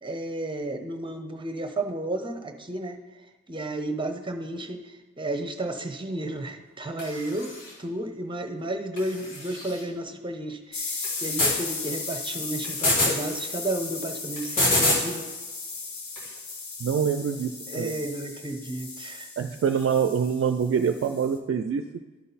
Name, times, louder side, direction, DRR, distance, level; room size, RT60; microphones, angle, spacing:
voice 1, 0.0-3.0 3.5-15.3 17.7-19.3, right 1 dB, 15° right, 6 dB, 0.9 m, -32 dB
sound 1, 7.0-7.7 9.0-9.8 11.0-11.6 12.6-13.1 14.4-15.0 16.2-16.3, left 1 dB, 80° left, 2.0 m, -26 dB
sound 2, 10.7-21.4, left 4 dB, 60° left, 1.0 m, -36 dB
voice 2, 16.8-17.9 19.4-21.8, right 7 dB, 45° right, 8 dB, 0.4 m, -25 dB
11.5 x 3.9 x 4.1 m, 1.2 s
cardioid pair, 45°, 32 cm